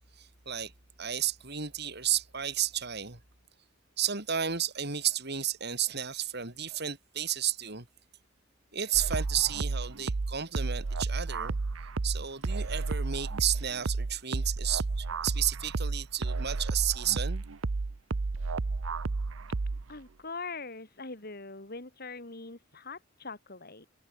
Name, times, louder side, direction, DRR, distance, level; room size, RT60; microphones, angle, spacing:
voice 1, 0.2-0.7 1.0-3.2 4.0-7.9 8.7-11.6 12.0-17.4, right 10 dB, 55° right, 4.0 m, -32 dB
sound 1, 8.9-20.0, right 3 dB, 85° right, 0.8 m, -32 dB
voice 2, 19.9-23.9, left 3 dB, 50° left, 3.5 m, -42 dB
head